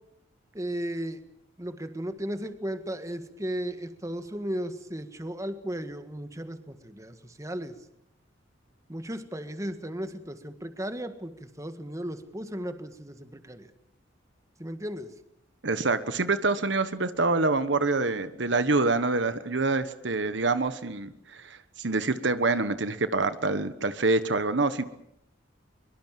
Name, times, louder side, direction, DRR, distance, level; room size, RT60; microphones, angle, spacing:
voice 1, 0.5-1.2 1.6-7.7 8.9-13.7 14.6-15.1, right 1 dB, 15° right, 9 dB, 1.7 m, -35 dB
voice 2, 15.6-24.8, right 3 dB, 65° right, 12 dB, 1.2 m, -26 dB
23.5 x 23.5 x 7.6 m, 0.77 s
head